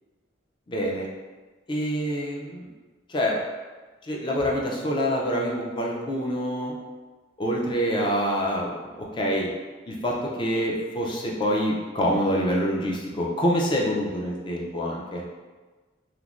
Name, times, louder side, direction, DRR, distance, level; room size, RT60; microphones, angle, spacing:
voice 1, 0.7-1.1 1.7-2.7 3.1-3.4 4.0-6.7 7.4-9.5 9.9-15.2, equal, 25° left, -2 dB, 0.4 m, -26 dB
3.1 x 2.0 x 2.4 m, 1.3 s
head